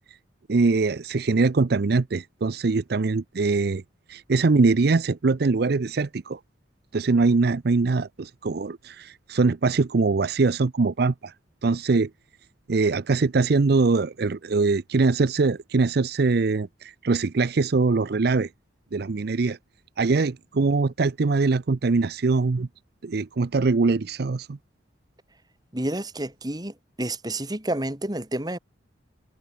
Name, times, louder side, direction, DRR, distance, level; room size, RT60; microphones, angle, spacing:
voice 1, 0.5-3.8 4.1-6.4 6.9-11.3 11.6-12.1 12.7-18.5 18.9-19.6 20.0-22.7 23.0-24.6, right 3 dB, 60° right, 0.5 m, -22 dB
voice 2, 25.7-28.6, right 1 dB, 20° right, 2.6 m, -30 dB
head